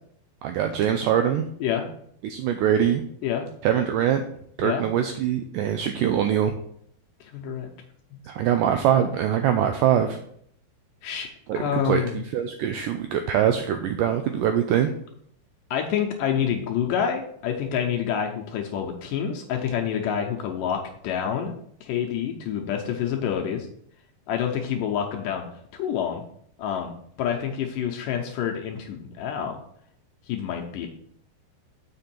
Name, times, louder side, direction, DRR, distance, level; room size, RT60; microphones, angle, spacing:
voice 1, 0.4-1.4 2.2-3.0 3.6-4.2 4.6-6.5 8.3-10.2 11.5-14.9, right 9 dB, 90° right, 7 dB, 1.9 m, -23 dB
voice 2, 7.3-7.7 11.0-11.3 11.6-12.2 15.7-21.5 21.8-23.7 24.3-25.4 25.7-26.2 26.6-26.9 27.2-29.6 30.3-30.9, left 8 dB, 80° left, 2 dB, 2.1 m, -27 dB
7.4 x 5.3 x 4.3 m, 0.67 s
omnidirectional pair, 4.3 m